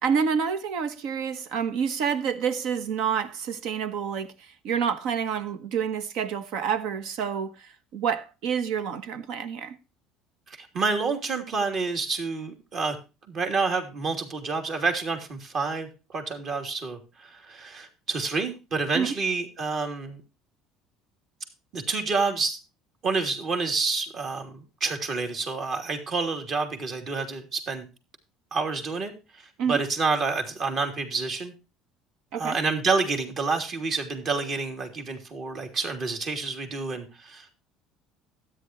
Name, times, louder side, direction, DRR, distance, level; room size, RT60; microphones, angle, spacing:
voice 1, 0.0-9.8 18.9-19.1 29.6-29.8 32.3-32.6, right 7 dB, 70° right, 1.3 m, -28 dB
voice 2, 10.5-13.0 13.3-20.2 21.7-22.6 23.0-27.9 28.5-31.5 32.4-37.6, right 4 dB, 50° right, 3.1 m, -28 dB
13.0 x 9.9 x 3.0 m
supercardioid pair, 85°, 0 cm